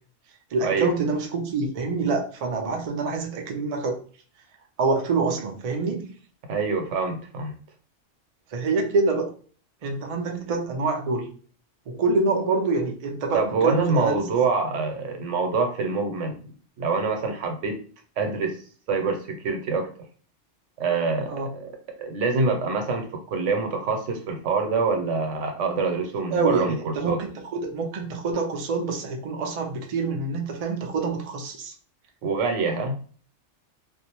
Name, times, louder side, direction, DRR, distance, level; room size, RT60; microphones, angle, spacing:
voice 1, 0.5-4.0 4.8-6.0 8.5-9.3 9.8-11.3 11.9-14.2 21.3-21.5 26.3-31.7, right 3 dB, 65° right, 3 dB, 0.4 m, -26 dB
voice 2, 6.5-7.6 13.3-16.3 16.8-17.8 18.2-18.6 18.9-19.9 20.8-21.7 22.0-27.2 32.2-32.9, right 4 dB, 85° right, 4 dB, 1.0 m, -25 dB
2.4 x 2.0 x 2.8 m, 0.43 s
omnidirectional pair, 1.2 m